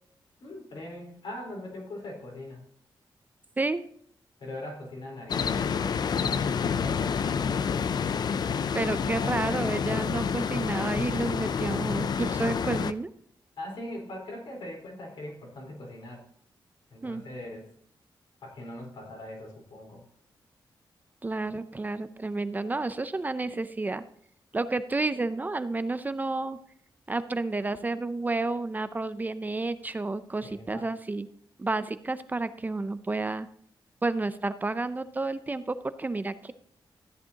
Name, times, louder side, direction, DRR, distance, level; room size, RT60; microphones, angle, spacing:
voice 1, 0.4-2.6 4.4-7.9 13.6-16.2 16.9-17.7 18.4-20.0 30.4-30.9, left 1 dB, 85° left, -2 dB, 4.3 m, -41 dB
sound 1, 5.3-12.9, left 6 dB, 55° left, 0.4 m, -28 dB
voice 2, 8.7-13.1 17.0-17.2 21.2-24.0 24.5-26.6 27.1-31.3 31.6-33.5 34.0-36.5, right 3 dB, 20° right, 12 dB, 0.5 m, -30 dB
13.5 x 10.0 x 2.9 m, 0.65 s
wide cardioid pair, 150°, 8 cm